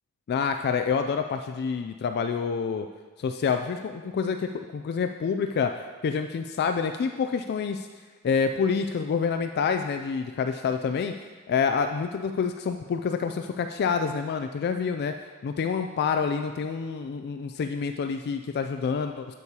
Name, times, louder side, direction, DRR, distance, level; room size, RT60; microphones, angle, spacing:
voice 1, 0.3-2.9 3.2-7.9 8.2-11.1 11.5-15.1 15.4-19.3, left 6 dB, 45° left, 7 dB, 0.3 m, -27 dB
8.2 x 8.2 x 2.8 m, 1.4 s
head